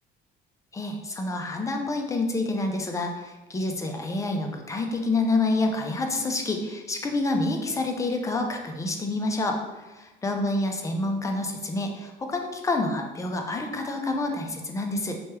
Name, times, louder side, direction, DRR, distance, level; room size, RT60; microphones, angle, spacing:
voice 1, 0.7-15.2, left 2 dB, 15° left, 3 dB, 0.3 m, -28 dB
3.0 x 2.2 x 3.0 m, 1.2 s
cardioid pair, 115°, 19 cm